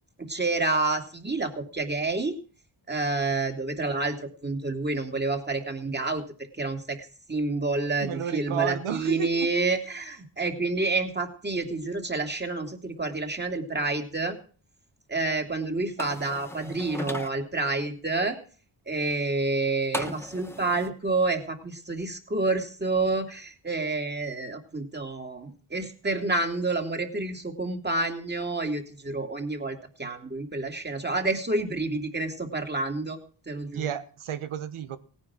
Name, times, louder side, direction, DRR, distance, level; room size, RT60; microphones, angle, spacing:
voice 1, 0.2-2.4 2.9-6.2 6.6-14.4 15.1-18.4 18.9-33.2 33.5-33.9, right 3 dB, 20° right, 5 dB, 2.8 m, -29 dB
voice 2, 8.0-9.5 33.7-35.0, right 9 dB, 80° right, 13 dB, 1.4 m, -31 dB
sound 1, 16.0-17.3 19.9-20.9, left 1 dB, 5° left, 1.4 m, -36 dB
17.5 x 9.8 x 6.3 m, 0.40 s
cardioid pair, 75°, 49 cm